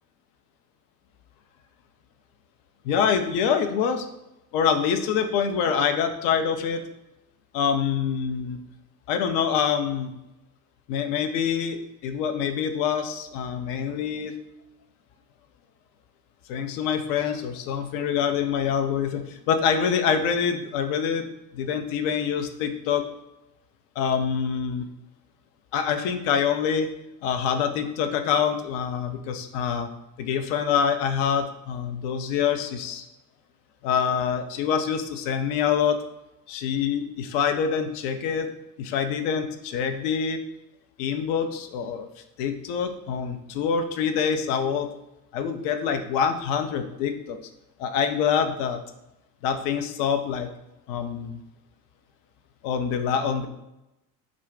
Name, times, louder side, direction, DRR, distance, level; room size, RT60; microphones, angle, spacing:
voice 1, 2.8-4.1 4.5-6.8 7.5-8.6 9.1-10.1 10.9-14.3 16.5-21.3 21.5-23.0 24.0-24.9 25.7-26.9 27.2-29.9 30.2-33.0 33.8-36.0 36.5-38.5 38.8-40.4 41.0-42.1 42.4-44.9 45.3-47.4 47.8-48.8 49.4-50.5 50.9-51.4 52.6-53.5, left 7 dB, 50° left, 7 dB, 0.4 m, -25 dB
2.4 x 2.1 x 3.5 m, 0.91 s
figure-of-eight pair, 55°, 49 cm